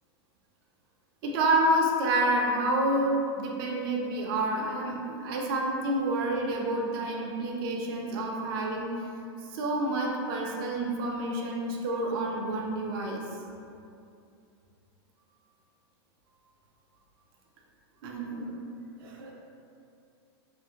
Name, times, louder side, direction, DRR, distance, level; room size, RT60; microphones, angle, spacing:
voice 1, 1.2-8.9 9.5-13.2 18.0-18.5 19.0-19.3, right 1 dB, 55° right, -1 dB, 0.4 m, -28 dB
2.7 x 2.5 x 2.7 m, 2.6 s
supercardioid pair, 150°, 14 cm